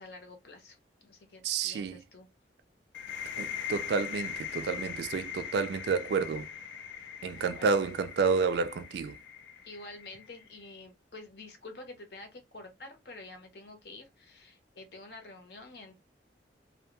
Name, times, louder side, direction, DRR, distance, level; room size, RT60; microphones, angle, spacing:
voice 1, 0.0-2.3 7.2-7.8 9.6-15.9, left 2 dB, 65° left, 0.8 m, -48 dB
voice 2, 1.4-2.0 3.4-6.5 7.2-9.2, right 5 dB, 70° right, 0.3 m, -30 dB
sound 1, 2.9-10.5, left 8 dB, 90° left, 0.4 m, -41 dB
2.2 x 2.2 x 2.9 m
head